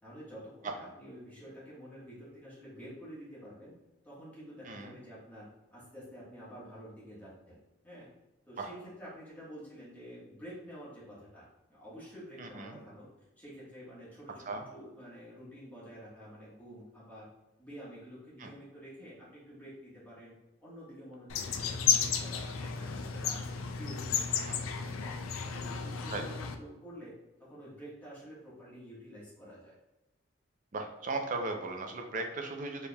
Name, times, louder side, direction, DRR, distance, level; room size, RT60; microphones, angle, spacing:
voice 1, 0.0-3.7 4.0-5.5 5.7-7.6 7.8-8.1 8.5-13.1 13.4-17.3 17.6-20.3 20.6-23.4 23.8-25.1 25.5-27.1 27.4-29.7, equal, 10° left, -9 dB, 1.4 m, -49 dB
voice 2, 4.7-5.0 8.6-8.7 12.4-12.8 14.5-14.6 18.4-18.5 24.5-24.6 26.1-26.2 30.7-32.9, right 3 dB, 40° right, 4 dB, 0.5 m, -37 dB
sound 1, 21.3-26.6, left 6 dB, 90° left, 0.4 m, -33 dB
4.4 x 3.4 x 2.3 m, 1.0 s
head